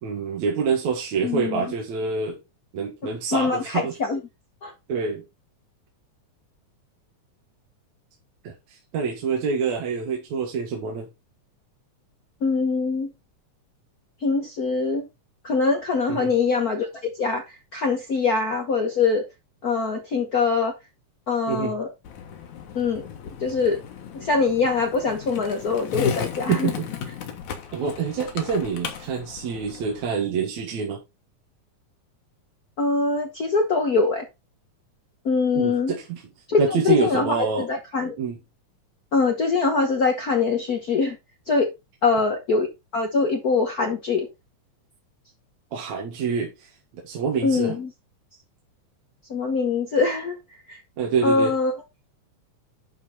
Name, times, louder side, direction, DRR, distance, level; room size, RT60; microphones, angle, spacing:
voice 1, 0.0-2.4 2.7-3.9 4.9-5.2 8.4-11.1 16.1-16.3 21.5-21.8 26.5-26.9 27.7-31.0 35.5-36.2 36.6-37.7 38.2-38.4 45.7-46.7 47.0-47.7 51.0-51.5, right 5 dB, 65° right, 2.8 m, -26 dB
voice 2, 1.2-1.6 3.3-4.2 4.6-4.7 12.4-13.1 14.2-15.1 15.4-16.9 17.2-19.3 19.6-20.8 21.3-21.9 22.7-23.1 23.4-23.8 24.1-26.7 32.8-34.2 35.2-35.9 36.5-38.2 39.1-41.2 41.5-41.7 42.0-42.7 42.9-44.3 47.4-47.9 49.3-50.4 50.7-50.8 51.2-51.7, left 4 dB, 85° left, 0.8 m, -23 dB
Skateboard, 22.0-30.1, left 7 dB, 70° left, 2.8 m, -35 dB
11.0 x 4.5 x 4.1 m
omnidirectional pair, 3.5 m